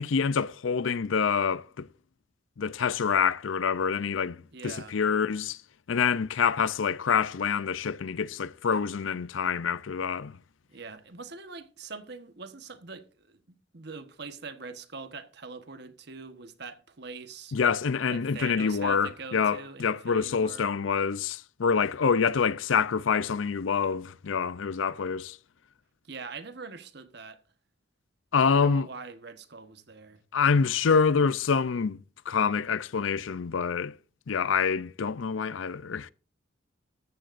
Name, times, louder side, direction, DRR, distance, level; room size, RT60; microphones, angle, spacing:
voice 1, 0.0-1.9 2.6-5.6 5.9-10.4 17.5-25.4 28.3-28.9 30.3-33.9 34.3-36.1, left 6 dB, 80° left, 0.5 m, -26 dB
voice 2, 4.5-5.0 10.7-17.6 18.1-20.6 26.0-27.4 28.5-30.2, right 4 dB, 55° right, 1.2 m, -43 dB
14.0 x 13.5 x 2.6 m
head